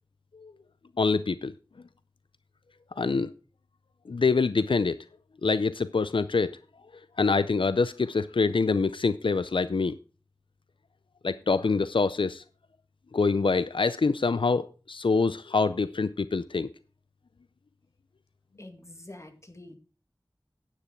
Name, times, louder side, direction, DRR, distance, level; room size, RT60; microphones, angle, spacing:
voice 1, 1.0-1.5 3.0-3.3 4.1-5.0 5.4-6.5 7.2-10.0 11.2-12.4 13.1-16.7, left 4 dB, 90° left, 0.5 m, -25 dB
voice 2, 18.6-19.8, left 1 dB, 35° left, 2.2 m, -46 dB
10.0 x 9.2 x 4.5 m
wide cardioid pair, 45°, 8 cm